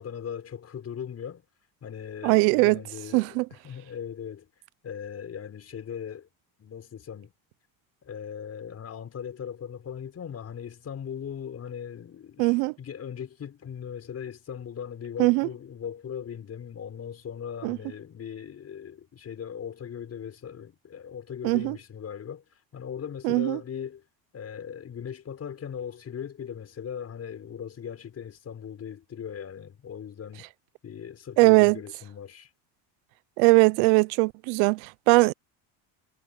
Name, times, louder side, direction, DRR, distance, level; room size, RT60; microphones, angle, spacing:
voice 1, 0.0-1.4 1.8-4.5 4.8-6.3 6.6-7.3 8.0-22.4 22.7-24.0 24.3-30.5 30.8-32.5, left 8 dB, 35° left, 5.4 m, -39 dB
voice 2, 2.2-2.8 3.1-3.5 12.4-12.7 15.2-15.5 17.6-17.8 21.4-21.8 23.2-23.6 31.4-31.8 33.4-35.3, right 26 dB, 90° right, 0.8 m, -20 dB
cardioid pair, 135°, 45 cm